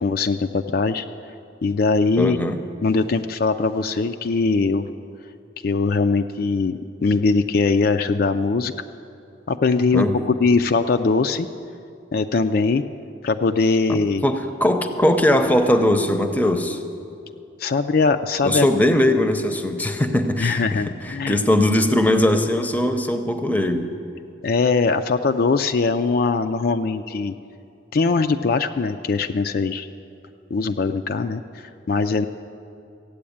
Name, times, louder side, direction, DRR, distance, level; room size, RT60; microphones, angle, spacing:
voice 1, 0.0-1.1 1.6-2.4 2.8-4.9 5.6-8.7 9.5-11.5 12.1-12.8 13.2-14.2 17.6-18.7 20.4-21.4 24.4-27.3 27.9-29.9 30.5-32.3, left 4 dB, 50° left, 8 dB, 0.4 m, -21 dB
voice 2, 2.2-2.6 9.9-10.2 13.9-16.8 18.4-20.8 21.0-23.9, left 1 dB, 10° left, 7 dB, 0.7 m, -20 dB
15.0 x 8.6 x 8.6 m, 2.6 s
head